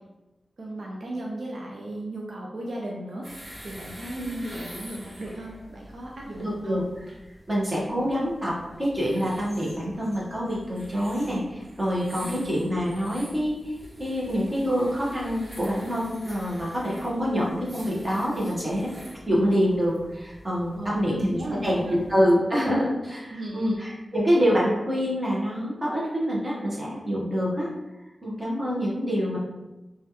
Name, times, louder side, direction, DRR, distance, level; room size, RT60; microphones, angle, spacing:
voice 1, 0.6-6.8 12.2-12.4 20.7-22.0 23.3-23.8, right 1 dB, 65° right, -2 dB, 0.4 m, -36 dB
sound 1, 3.2-22.3, equal, 50° right, 1.3 m, -47 dB
voice 2, 6.4-7.1 7.5-18.9 19.3-27.7 28.2-29.4, equal, 20° right, -6 dB, 1.0 m, -26 dB
3.1 x 2.3 x 2.8 m, 1.0 s
wide cardioid pair, 90°, 0 cm